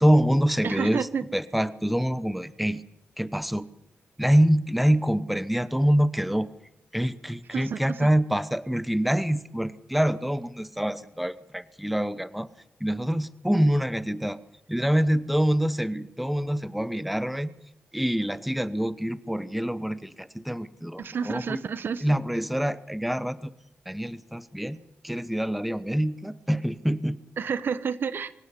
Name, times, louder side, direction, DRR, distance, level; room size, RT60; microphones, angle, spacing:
voice 1, 0.0-1.1 1.3-2.8 3.2-3.7 4.2-6.5 6.9-12.5 12.8-14.4 14.7-17.5 17.9-21.6 22.0-23.5 23.9-24.8 25.0-27.2, equal, ahead, 14 dB, 0.9 m, -25 dB
voice 2, 0.6-1.2 7.5-8.1 21.0-22.1 27.4-28.3, right 6 dB, 65° right, 14 dB, 1.1 m, -30 dB
24.5 x 17.0 x 8.4 m, 0.82 s
cardioid pair, 100°, 4 cm